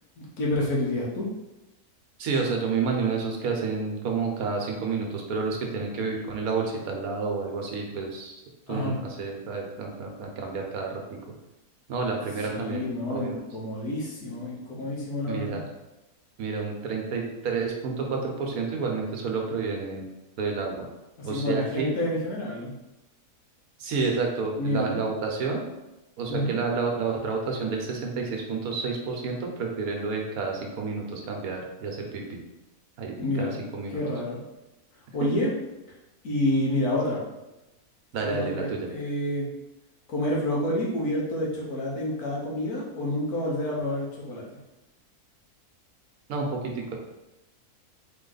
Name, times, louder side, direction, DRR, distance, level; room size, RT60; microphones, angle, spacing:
voice 1, 0.2-1.3 8.7-9.0 12.5-15.6 21.2-22.7 24.6-25.1 26.3-26.5 33.2-33.6 33.9-34.4 35.1-35.5 36.2-37.2 38.2-39.5 40.1-44.4, left 1 dB, 75° left, -3 dB, 1.6 m, -28 dB
voice 2, 2.2-8.4 8.7-11.0 11.9-13.4 15.3-15.6 16.4-20.1 20.4-20.9 21.2-21.9 23.8-25.6 26.2-32.4 33.0-34.0 35.2-35.3 38.1-38.9 46.3-46.9, right 4 dB, 75° right, 1 dB, 1.2 m, -30 dB
4.1 x 3.1 x 3.9 m, 0.99 s
omnidirectional pair, 1.6 m